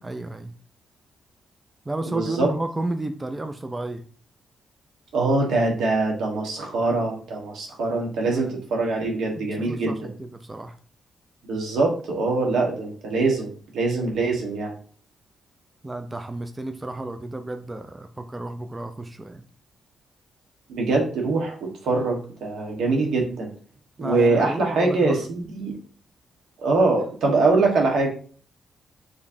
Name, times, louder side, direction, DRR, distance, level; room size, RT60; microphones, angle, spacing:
voice 1, 0.0-0.5 1.9-4.0 8.2-8.5 9.3-10.8 15.8-19.5 24.0-25.3, right 2 dB, 20° right, 7 dB, 0.4 m, -32 dB
voice 2, 2.0-2.5 5.1-9.9 11.4-14.7 20.7-23.5 24.0-25.8 26.6-28.1, right 3 dB, 85° right, 0 dB, 1.3 m, -23 dB
5.0 x 3.2 x 2.6 m, 0.42 s
cardioid pair, 85°, 0 cm